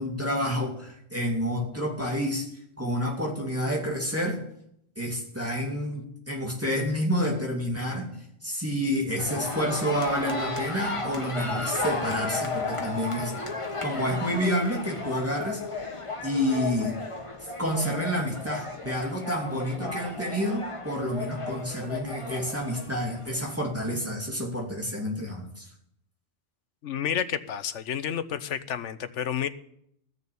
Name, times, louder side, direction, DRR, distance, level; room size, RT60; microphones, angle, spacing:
voice 1, 0.0-2.5 2.8-4.4 5.0-13.3 13.8-15.6 16.2-17.0 17.6-25.7, equal, 10° right, -2 dB, 2.5 m, -29 dB
sound 1, 9.2-23.5, left 3 dB, 30° left, 1.3 m, -34 dB
voice 2, 26.8-29.5, left 8 dB, 85° left, 13 dB, 1.2 m, -30 dB
15.0 x 6.8 x 8.5 m, 0.74 s
omnidirectional pair, 1.2 m